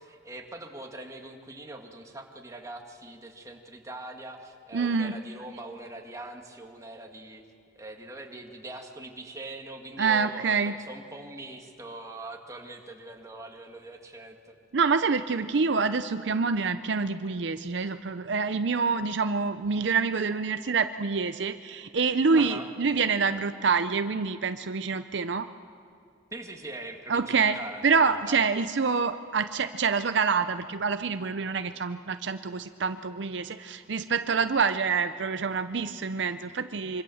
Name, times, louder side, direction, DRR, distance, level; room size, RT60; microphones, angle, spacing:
voice 1, 0.0-7.4 7.8-14.5 22.3-22.7 26.3-28.5, right 2 dB, 15° right, 2 dB, 2.0 m, -42 dB
voice 2, 4.7-5.1 10.0-10.7 14.7-25.5 27.1-27.6 27.8-37.0, right 5 dB, 60° right, 10 dB, 0.6 m, -26 dB
25.5 x 24.5 x 7.1 m, 2.6 s
head